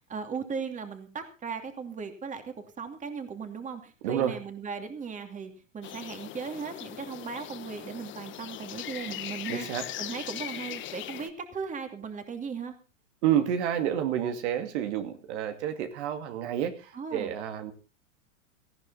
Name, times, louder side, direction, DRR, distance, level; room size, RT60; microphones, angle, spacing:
voice 1, 0.1-9.7 10.0-12.7 16.9-17.3, right 6 dB, 20° right, 6 dB, 2.7 m, -37 dB
voice 2, 4.0-4.4 9.5-9.9 13.2-17.7, right 10 dB, 60° right, 7 dB, 2.5 m, -29 dB
sound 1, 5.8-11.3, left 12 dB, 30° left, 1.3 m, -40 dB
18.5 x 14.0 x 4.1 m, 0.34 s
hypercardioid pair, 120°, 39 cm